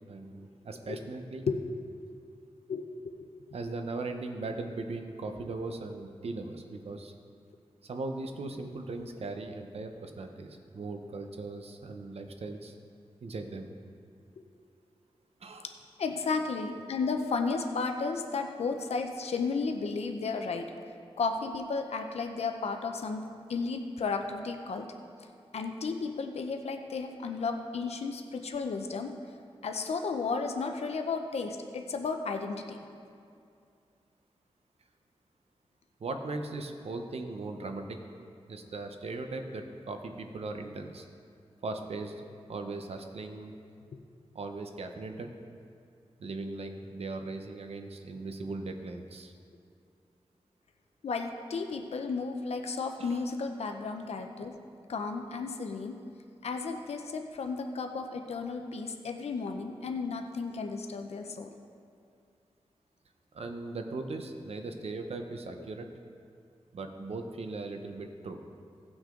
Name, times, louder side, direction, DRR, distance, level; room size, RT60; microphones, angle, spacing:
voice 1, 0.1-1.4 3.5-7.1 7.8-12.7 13.2-13.7 15.4-15.6 36.0-38.0 38.5-41.1 41.6-43.5 44.3-45.3 46.2-49.3 53.0-53.2 63.3-65.9 66.7-68.4, right 3 dB, 75° right, 5 dB, 0.9 m, -38 dB
voice 2, 16.0-20.7 21.2-23.2 23.5-24.9 25.5-29.1 29.6-32.8 51.0-54.5 54.9-56.0 56.4-61.5, left 4 dB, 90° left, 5 dB, 0.7 m, -33 dB
17.0 x 6.1 x 3.8 m, 2.4 s
wide cardioid pair, 125°, 10 cm